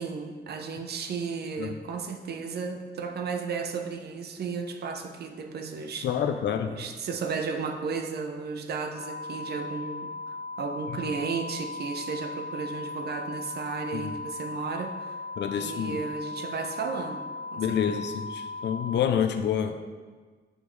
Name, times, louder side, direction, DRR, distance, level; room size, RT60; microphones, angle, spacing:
voice 1, 0.0-6.1 6.7-15.1 15.6-17.3 17.5-18.0, right 5 dB, 65° right, 5 dB, 0.6 m, -34 dB
voice 2, 6.0-6.7 13.9-14.1 15.4-16.0 17.6-20.0, left 8 dB, 85° left, 7 dB, 0.5 m, -28 dB
sound 1, 8.9-18.9, left 3 dB, 45° right, 1.2 m, -38 dB
6.2 x 5.1 x 3.2 m, 1.4 s
wide cardioid pair, 145°, 18 cm